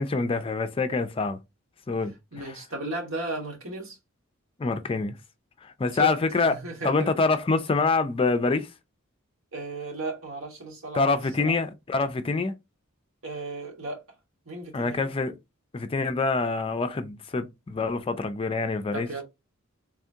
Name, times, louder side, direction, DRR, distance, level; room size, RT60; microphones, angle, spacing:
voice 1, 0.0-1.4 1.9-2.6 4.6-5.1 5.6-6.5 6.8-8.7 10.9-12.5 14.7-15.4 15.7-19.2, left 3 dB, 25° left, 0.4 m, -26 dB
voice 2, 2.3-4.0 6.0-6.1 6.4-7.1 9.5-11.5 13.2-14.0 14.4-15.1 18.9-19.2, right 2 dB, 85° right, 1.7 m, -35 dB
3.5 x 2.7 x 3.4 m
head